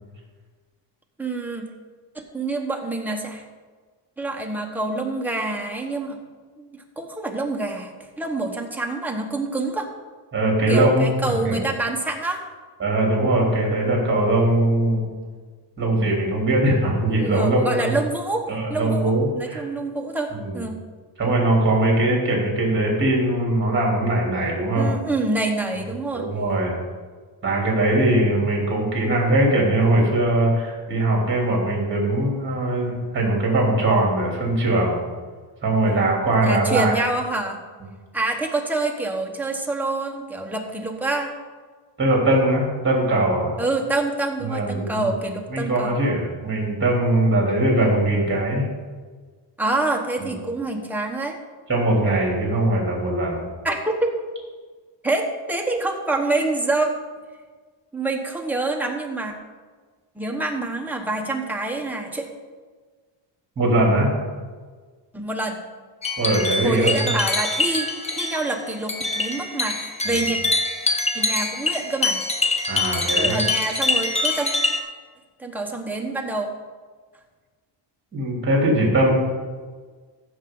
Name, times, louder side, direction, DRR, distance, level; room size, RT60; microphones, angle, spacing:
voice 1, 1.2-1.7 2.1-3.4 4.2-6.2 6.6-7.9 8.2-9.9 10.7-12.4 17.1-20.8 24.7-26.3 35.8-36.1 36.4-37.6 38.1-41.3 43.6-46.0 49.6-51.4 53.6-54.2 55.0-56.9 57.9-59.3 60.1-62.3 65.1-65.6 66.6-70.4 71.1-72.2 73.2-74.5 75.4-76.5, right 2 dB, 5° right, 1 dB, 1.1 m, -26 dB
voice 2, 10.3-11.7 12.8-15.1 15.8-17.9 18.5-19.6 20.3-20.6 21.2-24.9 26.1-26.8 27.4-35.0 35.6-36.9 42.0-43.5 44.4-45.2 45.5-48.7 50.2-50.3 51.7-53.4 63.6-64.1 66.2-66.9 70.1-70.2 72.7-73.4 78.1-79.1, right 1 dB, 25° right, -2 dB, 3.4 m, -21 dB
sound 1, 66.0-74.8, left 2 dB, 15° left, 0.8 m, -24 dB
15.0 x 6.4 x 3.9 m, 1.5 s
cardioid pair, 130°, 45 cm